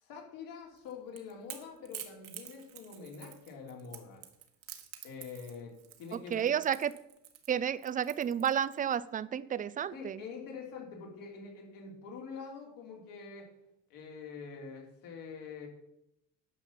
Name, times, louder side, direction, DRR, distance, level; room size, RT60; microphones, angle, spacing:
voice 1, 0.0-4.2 5.0-6.5 9.9-13.5 13.9-15.7, left 5 dB, 65° left, 1 dB, 3.2 m, -45 dB
Crackle / Crack, 0.8-8.9, right 11 dB, 60° right, 1.6 m, -49 dB
voice 2, 6.3-6.9 7.5-10.2, right 9 dB, 25° right, 17 dB, 0.4 m, -31 dB
10.0 x 5.7 x 7.3 m, 0.83 s
supercardioid pair, 105°, 36 cm